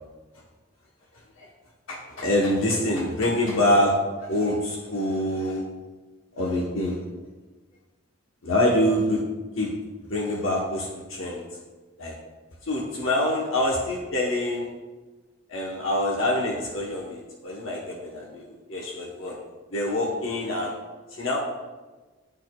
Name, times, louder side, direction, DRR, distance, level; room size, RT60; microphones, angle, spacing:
voice 1, 1.9-5.6 6.3-7.0 8.4-9.2 9.6-9.7 10.0-11.4 12.0-12.1 12.6-14.7 15.5-19.3 19.7-20.7 21.1-21.4, left 1 dB, 75° left, -3 dB, 1.0 m, -25 dB
11.0 x 4.3 x 2.2 m, 1.2 s
head